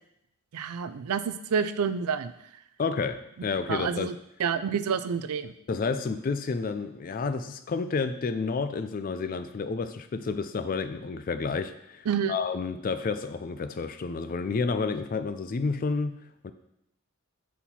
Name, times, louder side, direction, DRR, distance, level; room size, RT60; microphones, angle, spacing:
voice 1, 0.5-2.3 3.7-4.1 4.4-5.5 12.1-12.3, right 6 dB, 90° right, 12 dB, 0.4 m, -28 dB
voice 2, 2.8-4.1 5.7-16.5, left 4 dB, 40° left, 10 dB, 0.3 m, -30 dB
7.2 x 4.3 x 4.2 m, 0.79 s
head